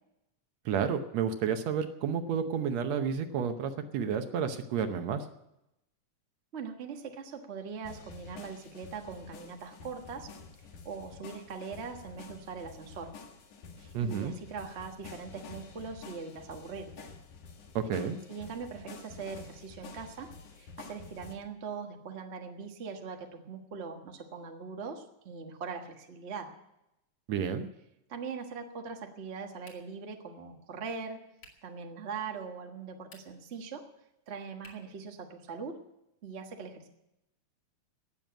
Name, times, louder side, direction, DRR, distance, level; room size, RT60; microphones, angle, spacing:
voice 1, 0.7-5.3 13.9-14.3 17.8-18.2 27.3-27.7, right 7 dB, 70° right, 8 dB, 1.8 m, -31 dB
voice 2, 6.5-10.3 10.8-13.1 13.8-17.1 18.3-26.5 28.1-31.2 31.6-33.9 34.3-35.8 36.2-36.9, right 5 dB, 85° right, 3 dB, 0.6 m, -41 dB
sound 1, 7.8-21.3, left 5 dB, 70° left, 2.8 m, -49 dB
sound 2, 29.6-30.1 31.4-31.7 33.0-33.5 34.6-35.0, left 2 dB, 45° left, 3.2 m, -56 dB
18.0 x 7.1 x 9.1 m, 0.87 s
omnidirectional pair, 3.8 m